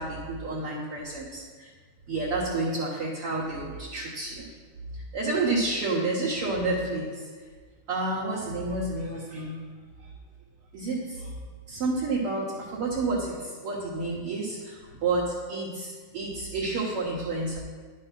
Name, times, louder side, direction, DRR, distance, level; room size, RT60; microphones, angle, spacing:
voice 1, 0.0-1.7 2.1-4.5 5.1-7.3 7.9-9.6 10.7-11.3 11.7-17.6, right 2 dB, 55° right, -5 dB, 1.7 m, -30 dB
10.5 x 5.5 x 5.8 m, 1.5 s
omnidirectional pair, 3.9 m